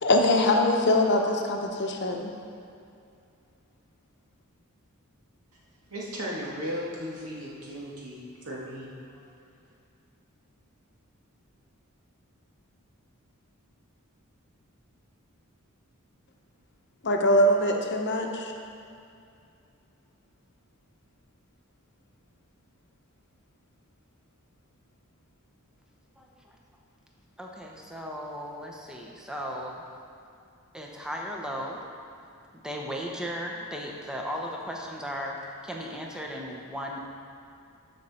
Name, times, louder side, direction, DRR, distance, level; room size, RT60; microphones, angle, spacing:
voice 1, 0.0-2.3 17.0-18.5, left 1 dB, 50° left, 2 dB, 0.9 m, -23 dB
voice 2, 5.9-9.2, equal, 90° right, -5 dB, 2.1 m, -36 dB
voice 3, 26.2-26.6 27.4-29.8 30.7-31.8 32.6-37.0, equal, 5° right, -1 dB, 0.8 m, -36 dB
13.0 x 5.3 x 4.3 m, 2.5 s
head